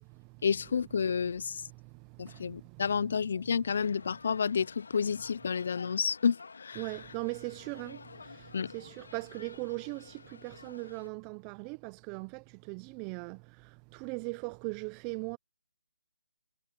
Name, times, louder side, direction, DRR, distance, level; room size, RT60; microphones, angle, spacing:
voice 1, 0.4-1.6 2.2-6.8 8.5-8.7, left 6 dB, 55° left, 0.3 m, -30 dB
voice 2, 1.6-3.2 6.8-15.4, right 30 dB, 20° right, 0.4 m, -40 dB
sound 1, 3.7-11.1, left 4 dB, 75° left, 2.4 m, -51 dB
hypercardioid pair, 160°, 0 cm